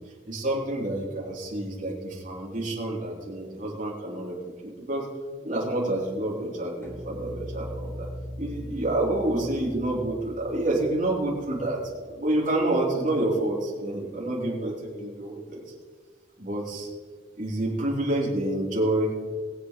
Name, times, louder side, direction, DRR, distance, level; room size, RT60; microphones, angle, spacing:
voice 1, 0.3-4.3 4.6-5.0 5.4-8.1 8.4-11.8 12.1-15.6 16.4-16.9 17.4-19.1, right 1 dB, 50° right, -4 dB, 3.3 m, -28 dB
sound 1, 6.8-12.1, equal, 15° left, 2.1 m, -40 dB
21.5 x 8.2 x 3.2 m, 1.5 s
head